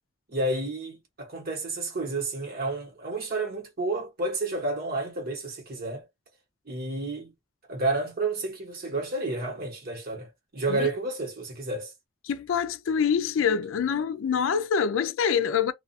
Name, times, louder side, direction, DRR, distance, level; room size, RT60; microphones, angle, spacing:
voice 1, 0.3-6.0 6.7-7.3 7.7-11.9, right 2 dB, 50° right, 1.1 m, -30 dB
voice 2, 12.2-15.7, left 7 dB, 85° left, 0.4 m, -25 dB
2.3 x 2.3 x 2.6 m
head